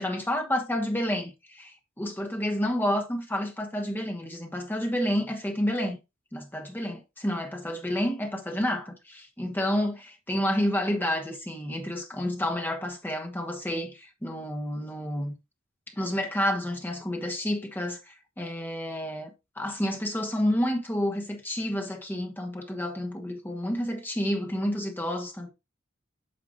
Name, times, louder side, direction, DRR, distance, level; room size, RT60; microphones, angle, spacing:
voice 1, 0.0-6.0 6.3-15.3 16.0-25.5, equal, 10° left, 1.1 m, -30 dB
8.6 x 5.7 x 2.5 m
head